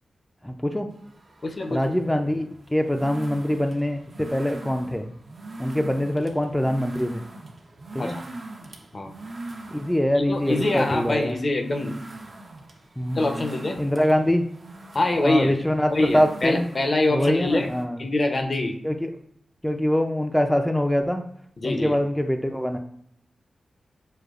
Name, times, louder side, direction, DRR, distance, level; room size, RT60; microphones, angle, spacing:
voice 1, 0.4-0.9 1.7-5.1 5.6-7.2 7.9-8.2 9.7-11.3 13.0-13.3 13.8-14.4 15.2-16.7 17.1-18.0 18.8-19.1 19.6-21.2 21.6-22.8, equal, 10° left, 4 dB, 0.4 m, -24 dB
sound 1, 0.9-17.8, right 2 dB, 55° right, 0.7 m, -41 dB
voice 2, 1.4-1.9 8.0-8.1 8.9-9.1 10.2-12.0 13.2-13.8 14.9-15.6 15.9-17.7 18.0-18.8 21.6-22.0, left 2 dB, 50° left, 4 dB, 0.7 m, -24 dB
6.4 x 2.2 x 2.4 m, 0.70 s
cardioid pair, 40°, 0 cm